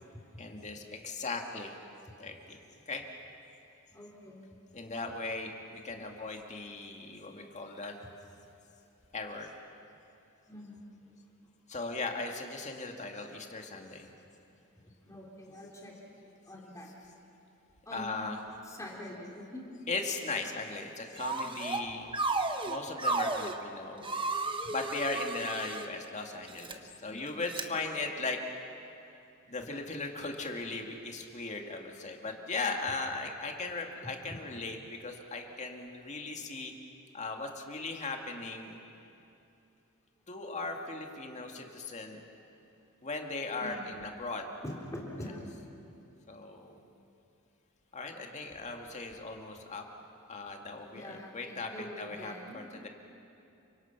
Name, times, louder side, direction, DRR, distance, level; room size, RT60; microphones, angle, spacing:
voice 1, 0.4-1.8 2.2-2.6 2.9-3.0 4.7-7.9 9.1-9.5 11.7-14.1 17.9-18.4 19.9-22.1 22.7-24.1 24.7-28.4 29.5-36.7 37.1-38.8 40.3-42.2 43.0-44.5 46.3-46.8 47.9-49.8 50.3-52.9, left 3 dB, 35° left, 3 dB, 2.1 m, -38 dB
voice 2, 3.9-4.4 10.5-10.8 15.0-16.9 17.8-18.2 18.6-19.6 24.6-24.7 27.1-27.4 34.0-34.1 43.6-44.0 44.6-45.5 50.9-52.6, left 1 dB, 15° left, -2 dB, 3.3 m, -45 dB
sound 1, 21.2-21.8 22.1-23.6 24.0-25.9 26.5-26.7 27.5-27.6, right 3 dB, 25° right, 1.2 m, -33 dB
30.0 x 25.0 x 6.0 m, 2.8 s
head